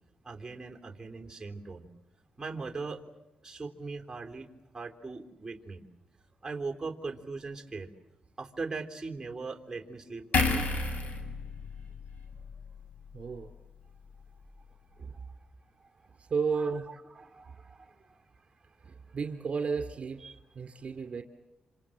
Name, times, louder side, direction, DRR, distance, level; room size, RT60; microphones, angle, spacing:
voice 1, 0.2-1.8 2.4-3.0 3.4-4.5 4.7-5.8 6.4-7.9 8.4-10.7 15.8-15.9 16.5-16.8 17.2-18.2 20.2-20.4, right 4 dB, 20° right, 4 dB, 3.6 m, -40 dB
sound 1, 10.3-13.7 14.0-14.2, left 3 dB, 60° left, 6.0 m, -32 dB
voice 2, 13.1-13.5 15.0-15.2 16.2-16.9 18.8-20.2 20.5-21.2, right 5 dB, 50° right, 5 dB, 2.8 m, -33 dB
27.5 x 27.0 x 7.6 m, 1.0 s
cardioid pair, 75°, 3 cm